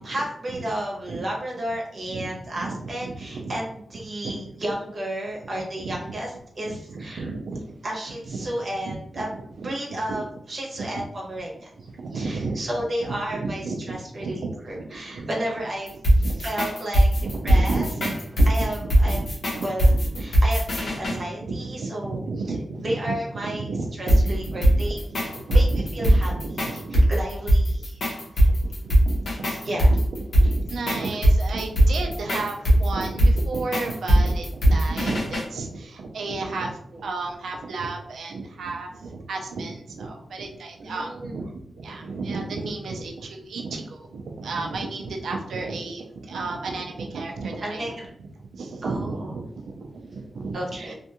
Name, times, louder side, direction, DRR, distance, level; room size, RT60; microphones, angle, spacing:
voice 1, 0.0-7.3 7.8-9.3 9.6-11.7 12.1-15.9 16.4-17.1 17.4-17.9 18.5-19.2 19.6-19.9 20.2-22.2 22.8-23.7 24.0-25.1 25.5-25.7 25.9-26.7 26.9-28.0 28.3-28.5 29.6-30.0 40.8-41.4 47.6-48.0 48.8-49.3 50.5-50.9, right 1 dB, 55° right, -2 dB, 0.8 m, -32 dB
voice 2, 2.1-3.6 4.2-4.3 5.5-6.2 6.6-7.6 8.3-8.4 8.9-9.3 9.6-10.0 10.8-11.1 12.0-12.6 13.1-15.3 16.2-16.4 17.2-19.7 20.1-20.2 21.1-24.9 25.2-27.1 28.1-29.2 29.5-30.0 30.3-47.9 48.2-50.9, right 3 dB, 85° right, 3 dB, 0.4 m, -33 dB
sound 1, 15.9-21.2 24.1-35.5, right 1 dB, 70° left, 0.9 m, -19 dB
2.5 x 2.3 x 2.8 m, 0.69 s
cardioid pair, 80°, 0 cm